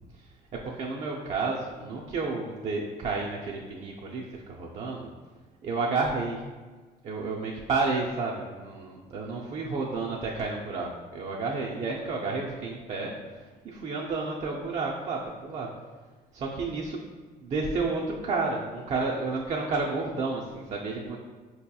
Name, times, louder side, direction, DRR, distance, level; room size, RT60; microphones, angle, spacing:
voice 1, 0.1-5.1 5.6-6.4 7.0-15.7 16.3-17.0 17.4-21.2, right 3 dB, 45° right, -2 dB, 0.4 m, -31 dB
4.5 x 2.8 x 2.2 m, 1.3 s
cardioid pair, 110°, 17 cm